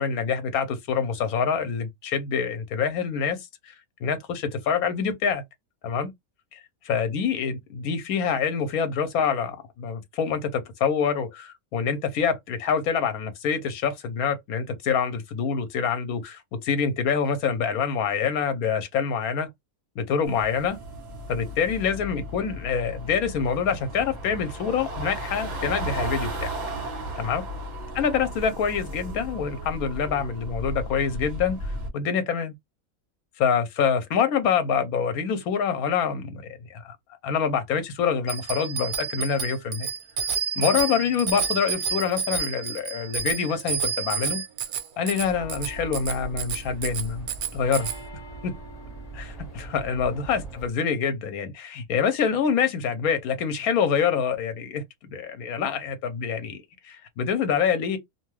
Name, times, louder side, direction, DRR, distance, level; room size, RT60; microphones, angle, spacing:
voice 1, 0.0-3.4 3.6-3.7 4.0-5.4 5.8-6.1 6.5-19.5 20.0-20.8 21.3-26.5 27.2-27.4 28.0-32.5 33.4-37.0 37.2-39.9 40.6-44.4 45.0-47.9 48.4-48.5 49.1-54.8 55.1-58.0, left 6 dB, 90° left, 1.2 m, -26 dB
sound 1, 20.2-31.9, right 1 dB, 35° right, 0.9 m, -35 dB
Bicycle bell, 38.3-48.0, right 6 dB, 85° right, 1.2 m, -30 dB
sound 2, 45.2-50.7, right 2 dB, 30° left, 1.0 m, -40 dB
2.8 x 2.3 x 3.0 m
omnidirectional pair, 1.5 m